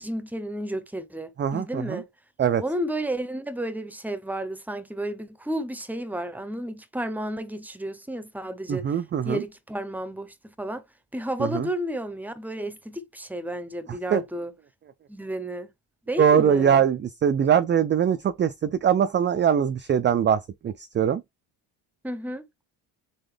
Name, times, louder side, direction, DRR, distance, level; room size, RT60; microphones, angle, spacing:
voice 1, 0.0-2.1 2.6-9.0 9.2-10.8 11.1-14.5 15.1-15.7 16.1-16.8 22.0-22.4, right 1 dB, 5° right, 0.7 m, -32 dB
voice 2, 1.4-2.0 2.4-2.6 8.7-9.4 11.4-11.7 14.1-14.2 16.2-21.2, right 8 dB, 25° right, 0.4 m, -22 dB
4.0 x 3.6 x 3.3 m
cardioid pair, 90°, 47 cm